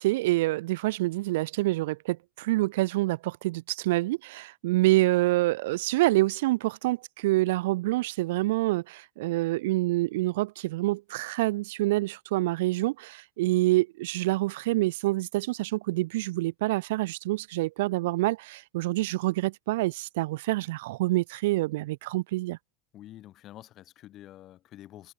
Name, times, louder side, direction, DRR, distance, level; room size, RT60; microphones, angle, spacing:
voice 1, 0.0-22.6, right 19 dB, 90° right, 0.5 m, -27 dB
voice 2, 22.9-25.1, left 13 dB, 35° left, 2.8 m, -48 dB
cardioid pair, 165°, 0 cm